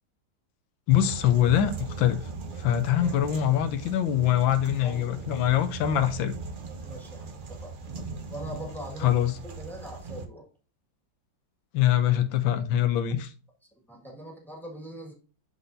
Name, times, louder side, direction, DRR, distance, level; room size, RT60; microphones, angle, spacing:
voice 1, 0.9-2.2 2.6-6.3 9.0-9.4 11.7-13.2, left 11 dB, 85° left, 1.5 m, -23 dB
sound 1, 0.9-10.2, right 4 dB, 65° right, 0.5 m, -39 dB
voice 2, 4.8-5.3 6.8-9.1 9.4-10.5 13.7-15.1, equal, ahead, 1.5 m, -42 dB
11.0 x 3.9 x 2.6 m
omnidirectional pair, 2.0 m